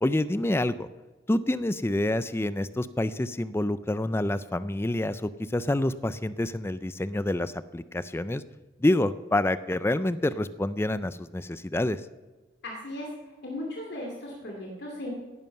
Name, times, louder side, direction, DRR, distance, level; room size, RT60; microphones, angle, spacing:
voice 1, 0.0-0.9 1.3-8.4 8.8-12.0, left 1 dB, 10° left, 15 dB, 0.4 m, -27 dB
voice 2, 12.6-15.1, left 1 dB, 55° left, -1 dB, 2.5 m, -37 dB
16.5 x 10.5 x 5.7 m, 1.3 s
head